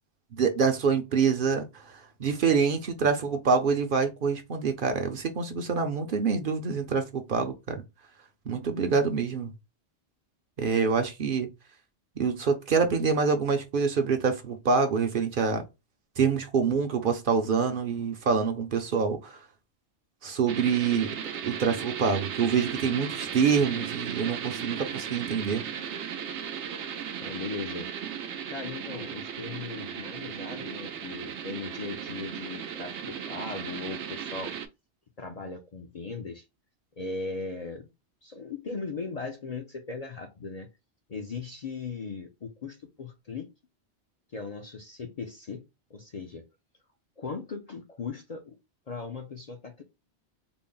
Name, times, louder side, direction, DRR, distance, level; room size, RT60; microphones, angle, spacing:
voice 1, 0.3-7.8 8.5-9.5 10.6-11.5 12.2-15.6 16.2-19.4 20.2-21.1 21.4-25.6, right 5 dB, 55° right, 0.7 m, -26 dB
sound 1, 20.5-34.7, right 8 dB, 85° right, 0.9 m, -36 dB
voice 2, 27.2-27.9 28.5-34.5 35.2-36.4 37.0-37.9 38.2-40.7 41.1-43.5 44.3-45.6 45.9-46.4 47.2-48.6 48.9-49.8, left 4 dB, 45° left, 0.5 m, -38 dB
3.9 x 2.0 x 3.7 m
omnidirectional pair, 1.1 m